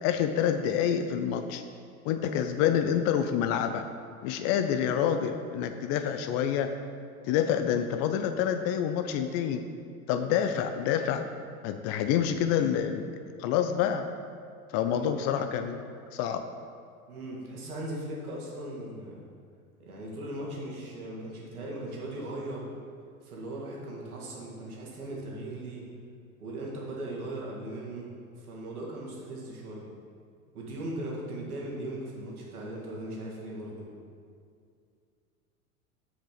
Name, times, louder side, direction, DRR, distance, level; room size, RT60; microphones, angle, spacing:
voice 1, 0.0-1.6 2.0-3.8 4.2-6.7 7.2-9.6 10.1-11.2 11.6-13.1 13.4-14.1 14.7-15.9 16.1-16.4, left 9 dB, 35° left, 8 dB, 0.4 m, -27 dB
voice 2, 17.1-19.2 19.8-22.7 23.2-25.9 26.4-29.9 30.5-33.9, right 1 dB, 80° right, -3 dB, 2.0 m, -38 dB
7.2 x 4.9 x 5.1 m, 2.2 s
hypercardioid pair, 85°, 44 cm